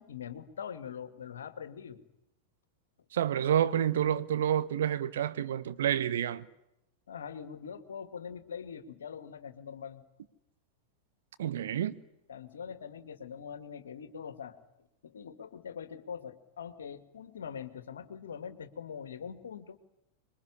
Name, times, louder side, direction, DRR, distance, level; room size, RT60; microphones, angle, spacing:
voice 1, 0.0-2.0 3.5-3.6 7.1-10.0 12.3-14.6 15.0-19.8, left 7 dB, 65° left, 2.1 m, -43 dB
voice 2, 3.1-6.4 11.4-11.9, right 10 dB, 60° right, 1.2 m, -29 dB
26.5 x 22.5 x 9.9 m
figure-of-eight pair, 90°, 0 cm